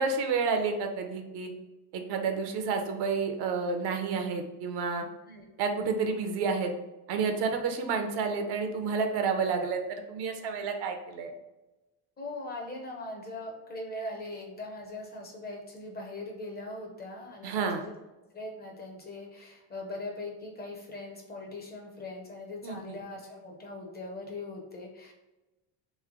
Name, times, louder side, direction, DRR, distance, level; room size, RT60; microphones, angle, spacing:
voice 1, 0.0-1.5 1.9-5.0 5.6-6.7 7.1-11.3 17.4-17.8 22.6-23.0, right 5 dB, 70° right, 5 dB, 0.7 m, -30 dB
voice 2, 12.2-17.9 18.3-25.1, left 2 dB, 25° left, 0 dB, 0.6 m, -41 dB
3.2 x 3.2 x 3.7 m, 1.0 s
cardioid pair, 155°, 43 cm